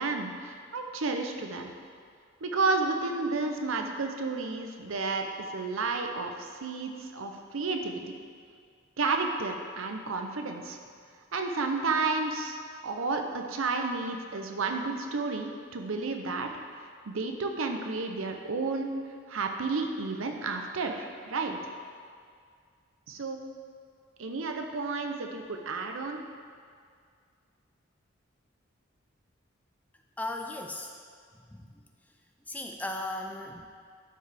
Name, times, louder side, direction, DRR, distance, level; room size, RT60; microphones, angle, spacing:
voice 1, 0.0-1.7 2.4-8.0 9.0-10.8 11.3-12.6 12.8-16.5 17.1-18.9 19.3-21.6 23.1-23.4 24.2-26.2, right 3 dB, 80° right, 4 dB, 0.7 m, -31 dB
voice 2, 30.2-30.9 31.5-31.8 32.5-33.7, left 2 dB, 10° left, 3 dB, 0.3 m, -36 dB
12.0 x 4.7 x 3.4 m, 2.1 s
head